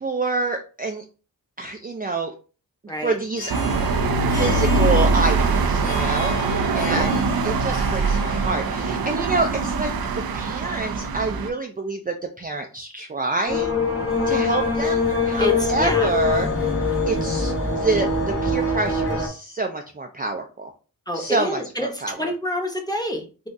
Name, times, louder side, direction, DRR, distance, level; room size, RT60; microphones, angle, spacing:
voice 1, 0.0-1.0 1.6-2.3 3.0-3.5 4.4-13.7 14.3-16.5 17.1-20.7 21.1-22.3, right 3 dB, 25° right, 3 dB, 0.4 m, -27 dB
voice 2, 2.9-3.2 6.9-7.2 15.4-16.1 21.1-23.5, equal, 10° left, 2 dB, 0.9 m, -27 dB
Harp, 3.2-10.5, left 3 dB, 85° left, 0.7 m, -36 dB
sound 1, 3.5-11.5, right 3 dB, 75° right, 0.5 m, -22 dB
sound 2, 13.5-19.3, left 3 dB, 35° left, 0.9 m, -23 dB
3.8 x 2.4 x 2.6 m, 0.36 s
cardioid pair, 55°, 36 cm